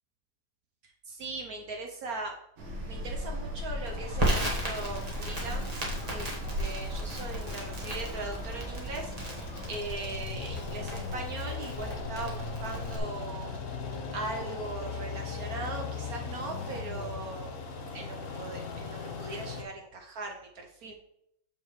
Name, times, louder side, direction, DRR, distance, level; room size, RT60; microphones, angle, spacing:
voice 1, 0.8-2.4 2.9-13.8 14.1-17.6 17.9-20.9, right 3 dB, 65° right, 2 dB, 1.1 m, -40 dB
sound 1, 2.6-9.8, left 1 dB, 90° right, 2.0 m, -37 dB
sound 2, 3.8-19.6, left 4 dB, 55° left, 1.0 m, -39 dB
Crackle, 4.2-13.0, right 1 dB, 25° right, 1.3 m, -36 dB
6.9 x 5.3 x 3.1 m, 0.78 s
omnidirectional pair, 1.9 m